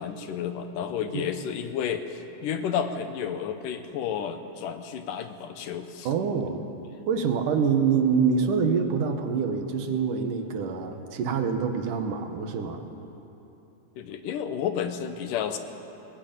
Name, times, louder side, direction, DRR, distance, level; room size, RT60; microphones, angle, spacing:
voice 1, 0.0-6.1 14.0-15.6, left 8 dB, 85° left, 8 dB, 2.7 m, -31 dB
voice 2, 6.0-6.6 7.1-12.8, right 6 dB, 80° right, 6 dB, 3.0 m, -26 dB
20.0 x 19.5 x 8.9 m, 3.0 s
omnidirectional pair, 3.7 m